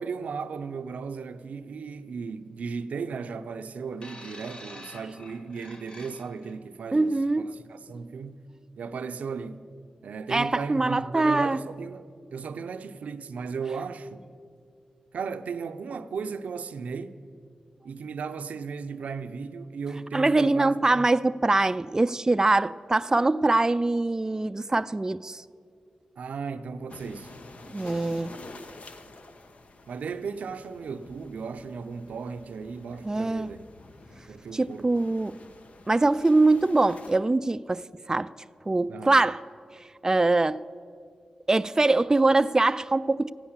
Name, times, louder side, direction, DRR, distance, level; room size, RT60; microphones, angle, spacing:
voice 1, 0.0-7.2 7.4-8.5 8.8-9.6 10.0-14.3 15.1-17.2 17.8-21.1 26.2-27.3 29.9-33.6 34.3-35.1 38.9-39.2, right 5 dB, 85° right, 0.5 m, -36 dB
sound 1, 4.0-6.6 7.5-7.6, left 1 dB, 45° left, 1.4 m, -46 dB
voice 2, 6.9-7.5 10.3-11.6 20.1-25.4 27.7-28.3 33.0-33.5 34.5-35.4 35.9-37.8 38.1-38.3 38.7-39.4 40.0-40.6 41.5-43.3, right 2 dB, 25° right, 0.3 m, -23 dB
sound 2, 26.9-37.2, left 2 dB, 65° left, 0.9 m, -48 dB
14.5 x 9.6 x 7.3 m
cardioid pair, 45°, 2 cm